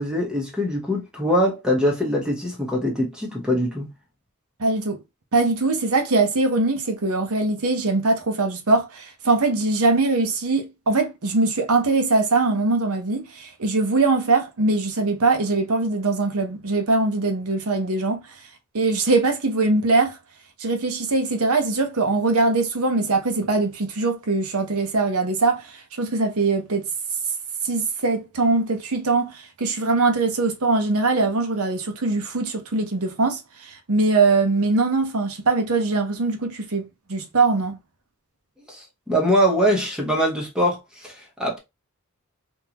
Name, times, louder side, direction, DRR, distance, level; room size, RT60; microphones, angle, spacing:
voice 1, 0.0-3.9 38.7-41.6, equal, 5° right, 1.0 m, -23 dB
voice 2, 4.6-5.0 5.3-18.2 18.7-20.2 20.6-26.9 27.6-37.8, right 3 dB, 75° right, 0.9 m, -22 dB
3.7 x 2.6 x 2.9 m
head